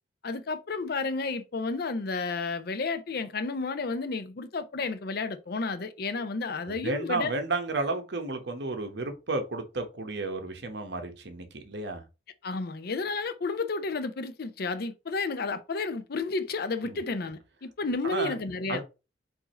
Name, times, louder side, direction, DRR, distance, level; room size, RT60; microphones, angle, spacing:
voice 1, 0.2-7.3 12.4-18.8, left 3 dB, 55° left, 0.5 m, -32 dB
voice 2, 6.7-12.0 16.8-17.0 18.0-18.4 18.7-18.8, right 3 dB, 60° right, 1.0 m, -32 dB
4.7 x 2.6 x 4.2 m
head